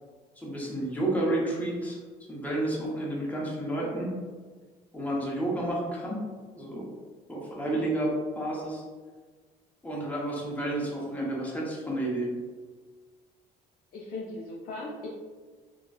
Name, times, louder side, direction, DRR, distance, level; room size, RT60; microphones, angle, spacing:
voice 1, 0.4-2.0 2.3-4.2 4.9-6.3 6.6-6.9 7.3-8.8 9.8-12.4, right 1 dB, 10° left, -4 dB, 0.8 m, -30 dB
voice 2, 13.9-15.1, left 2 dB, 65° left, -4 dB, 0.5 m, -38 dB
3.8 x 2.3 x 2.3 m, 1.4 s
cardioid pair, 110°, 17 cm